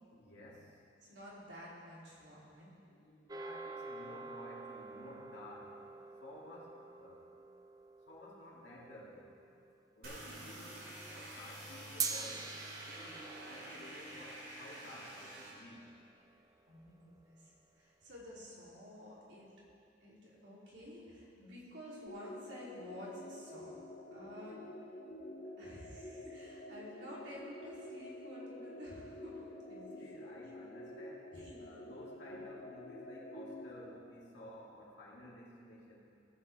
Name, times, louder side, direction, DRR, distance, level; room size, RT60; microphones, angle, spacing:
voice 1, 0.1-0.8 2.9-5.8 6.2-7.3 8.1-9.4 9.9-12.6 12.9-15.9 21.4-21.5 24.5-24.6 30.0-36.1, left 1 dB, 75° left, -5 dB, 2.3 m, -54 dB
voice 2, 1.0-2.7 16.7-17.0 17.2-19.5 20.0-23.7 24.1-24.6 25.6-30.0 31.3-31.7 32.3-32.4, equal, 75° right, -6 dB, 2.8 m, -51 dB
sound 1, 3.3-9.8 12.0-16.4, right 5 dB, 20° right, 0.4 m, -46 dB
sound 2, 10.0-15.5, right 1 dB, 50° right, 2.6 m, -48 dB
sound 3, 22.1-34.0, left 1 dB, 50° left, 0.9 m, -49 dB
16.5 x 7.3 x 3.3 m, 2.7 s
head